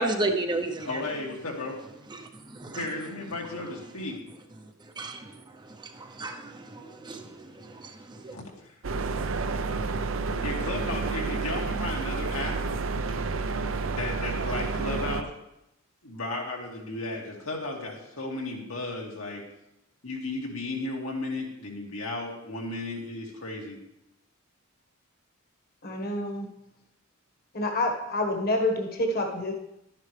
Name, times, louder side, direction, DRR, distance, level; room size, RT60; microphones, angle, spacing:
voice 1, 0.0-1.0 2.1-2.8 5.0-5.4 5.6-8.3, right 2 dB, 20° right, 0.7 m, -33 dB
voice 2, 0.8-1.8 2.7-4.2 8.3-8.7 10.4-12.6 13.8-15.3 16.0-19.4 20.0-23.8, left 2 dB, 85° left, 2.3 m, -34 dB
sound 1, 8.8-15.2, right 4 dB, 65° right, 0.6 m, -30 dB
voice 3, 25.8-26.5 27.5-29.5, left 1 dB, 45° left, 1.4 m, -28 dB
12.0 x 9.9 x 3.3 m
head